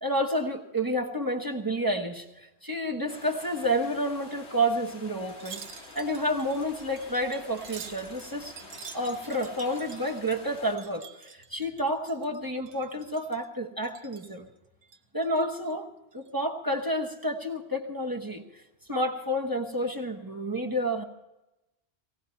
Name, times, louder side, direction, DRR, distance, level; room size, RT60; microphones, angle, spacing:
voice 1, 0.0-5.7 5.9-8.5 8.9-14.5 15.1-18.6 18.9-21.0, equal, 20° right, 3 dB, 1.1 m, -30 dB
sound 1, 3.1-10.8, left 3 dB, 75° left, 1.8 m, -48 dB
Wind chime, 5.3-12.4 12.7-13.5 13.8-14.4 14.8-15.7 16.1-16.3, right 6 dB, 80° right, 1.2 m, -48 dB
18.5 x 16.5 x 4.4 m, 0.96 s
omnidirectional pair, 1.1 m